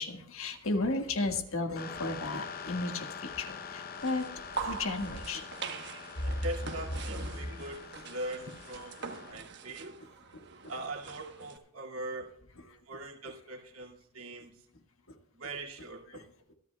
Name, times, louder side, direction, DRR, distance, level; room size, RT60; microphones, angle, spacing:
voice 1, 0.0-5.5 6.2-6.4 10.3-10.4 12.6-12.8 15.1-15.2 16.1-16.3, left 2 dB, 65° left, 5 dB, 1.7 m, -34 dB
sound 1, 1.8-9.3, left 6 dB, 45° left, 0.8 m, -45 dB
sound 2, 3.9-11.6, right 4 dB, 55° right, 1.2 m, -43 dB
voice 2, 6.3-9.0 9.3-10.0 10.7-12.3 12.9-14.5 15.4-16.3, right 2 dB, 75° right, 1 dB, 2.3 m, -41 dB
26.0 x 10.5 x 2.3 m, 0.70 s
head